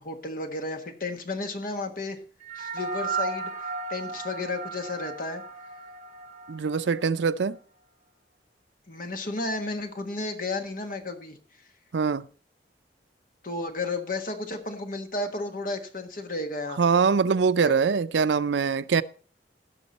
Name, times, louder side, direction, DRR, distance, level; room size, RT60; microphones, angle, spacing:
voice 1, 0.0-2.2 2.5-5.4 8.9-11.4 13.4-16.8 17.6-17.7, left 2 dB, 50° left, 1.5 m, -33 dB
sound 1, 2.4-7.1, right 3 dB, 40° right, 1.9 m, -35 dB
voice 2, 6.5-7.6 11.9-12.3 16.8-19.0, right 5 dB, 85° right, 0.5 m, -23 dB
17.0 x 6.1 x 4.1 m
head